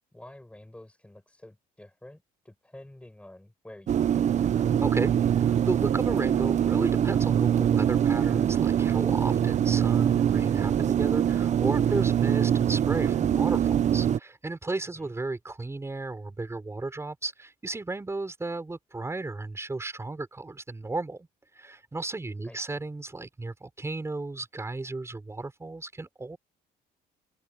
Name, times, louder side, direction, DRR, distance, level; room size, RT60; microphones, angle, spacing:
voice 1, 0.1-4.2 15.0-15.1 22.4-22.8, left 1 dB, 5° left, 5.2 m, -49 dB
sound 1, 3.9-14.2, right 9 dB, 45° right, 0.8 m, -24 dB
voice 2, 4.6-21.3 21.6-26.4, right 3 dB, 15° right, 5.4 m, -34 dB
cardioid pair, 110°, 17 cm